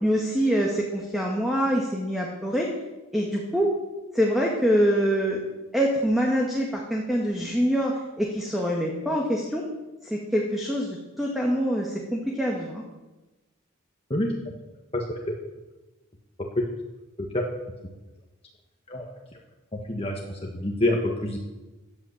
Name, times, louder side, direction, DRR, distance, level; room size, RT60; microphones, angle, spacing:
voice 1, 0.0-2.7 3.1-3.7 4.1-5.4 5.7-9.6 10.1-12.8, equal, ahead, -1 dB, 2.0 m, -25 dB
voice 2, 19.9-21.4, left 1 dB, 30° left, 0 dB, 1.7 m, -27 dB
17.0 x 11.0 x 7.4 m, 1.1 s
head